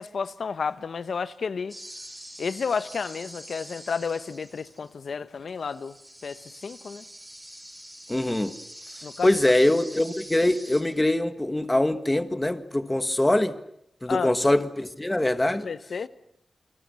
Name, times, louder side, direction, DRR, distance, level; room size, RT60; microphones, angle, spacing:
voice 1, 0.0-1.8 2.4-5.9 6.2-7.0 9.0-9.4 14.1-14.3 15.6-16.1, left 5 dB, 70° left, 1.1 m, -31 dB
sound 1, 1.7-5.0 5.5-10.8, right 1 dB, 10° right, 5.4 m, -45 dB
voice 2, 8.1-8.5 9.2-13.5 14.0-15.7, left 1 dB, 15° left, 1.6 m, -23 dB
28.5 x 24.5 x 7.1 m
wide cardioid pair, 125°, 0 cm